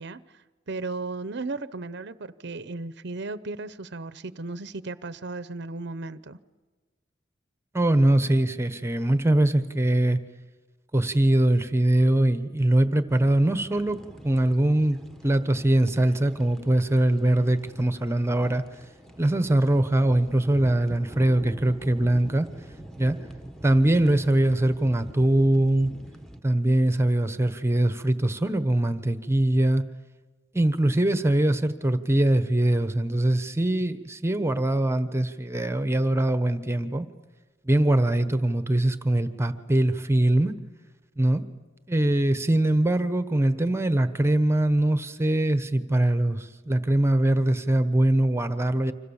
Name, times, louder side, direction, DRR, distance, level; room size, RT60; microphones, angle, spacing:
voice 1, 0.0-6.4, right 3 dB, 65° right, 14 dB, 0.8 m, -35 dB
voice 2, 7.7-10.2 10.9-18.6 19.2-22.5 23.0-23.2 23.6-25.9 26.4-29.8 30.5-37.1 37.6-40.5 41.2-41.4 41.9-48.9, right 1 dB, 15° right, 10 dB, 1.1 m, -22 dB
sound 1, 13.1-26.4, right 1 dB, 5° left, 1.3 m, -45 dB
30.0 x 26.0 x 7.2 m, 1.3 s
head